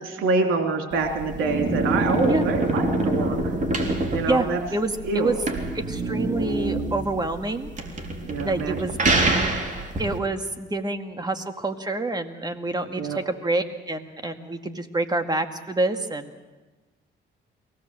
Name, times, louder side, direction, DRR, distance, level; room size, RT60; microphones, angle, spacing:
voice 1, 0.0-3.4 4.1-4.6 5.0-5.3 8.2-8.9 13.0-13.2, right 3 dB, 90° right, 4 dB, 2.9 m, -26 dB
sound 1, 0.9-10.2, right 2 dB, 40° right, 3.7 m, -26 dB
voice 2, 4.3-5.4 5.7-7.7 8.4-9.0 10.0-16.3, right 2 dB, 20° right, 6 dB, 2.1 m, -27 dB
23.5 x 18.0 x 7.7 m, 1.2 s
cardioid pair, 90°, 20 cm